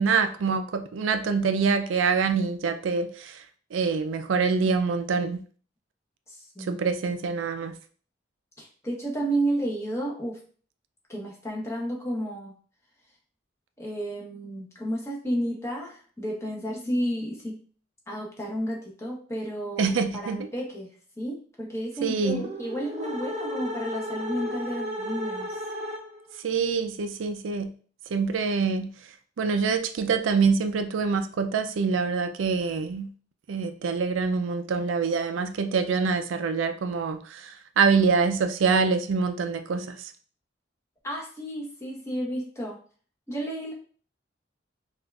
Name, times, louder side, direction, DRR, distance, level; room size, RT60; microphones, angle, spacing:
voice 1, 0.0-3.4 3.7-5.4 6.7-7.7 19.8-20.5 22.0-22.5 26.4-27.7 28.1-28.9 29.4-33.1 33.5-40.1, right 5 dB, 85° right, 8 dB, 0.4 m, -25 dB
voice 2, 6.3-6.8 8.6-10.4 11.1-12.5 13.8-17.6 18.1-20.9 21.2-25.6 41.0-42.8 43.3-43.7, right 1 dB, 15° left, -2 dB, 0.9 m, -32 dB
sound 1, 22.2-26.4, equal, 35° right, 0.7 m, -34 dB
5.1 x 2.4 x 2.3 m, 0.43 s
head